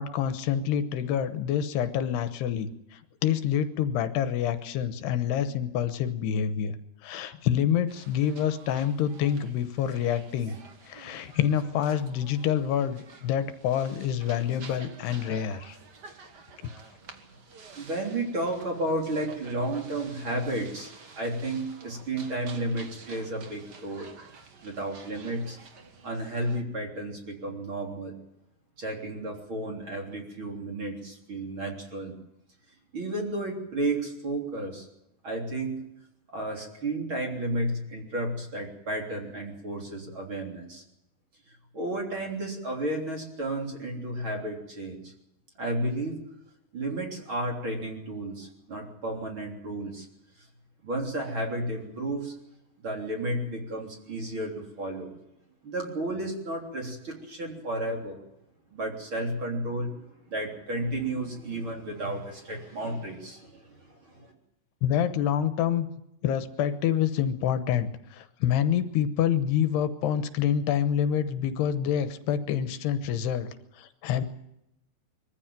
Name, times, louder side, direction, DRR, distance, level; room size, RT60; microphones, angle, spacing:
voice 1, 0.0-6.8 7.0-10.6 10.9-15.8 64.8-65.9 66.2-74.2, left 9 dB, 80° left, 10 dB, 3.1 m, -27 dB
sound 1, 7.9-26.6, right 4 dB, 75° right, 0.9 m, -50 dB
voice 2, 17.8-24.1 24.6-25.6 26.0-28.2 28.8-32.2 32.9-34.9 35.2-35.9 36.3-40.8 41.5-45.1 45.6-46.2 46.7-50.1 50.4-50.5 50.8-52.3 52.8-55.2 55.6-58.2 58.7-64.3, right 1 dB, 30° right, 1 dB, 3.8 m, -32 dB
23.0 x 14.5 x 9.1 m, 0.82 s
omnidirectional pair, 4.8 m